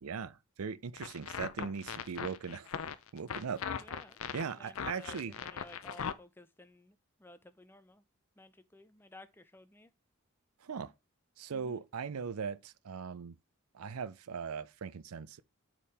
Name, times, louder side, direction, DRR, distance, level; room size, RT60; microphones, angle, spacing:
voice 1, 0.0-2.7 3.1-3.6 4.3-5.3 10.6-10.9 11.4-13.4 13.7-15.4, right 6 dB, 80° right, 0.5 m, -39 dB
sound 1, 1.0-6.1, left 7 dB, 70° left, 0.5 m, -39 dB
voice 2, 3.7-8.0 8.4-9.9 11.5-11.8, left 2 dB, 10° left, 0.4 m, -56 dB
8.4 x 3.7 x 4.2 m
head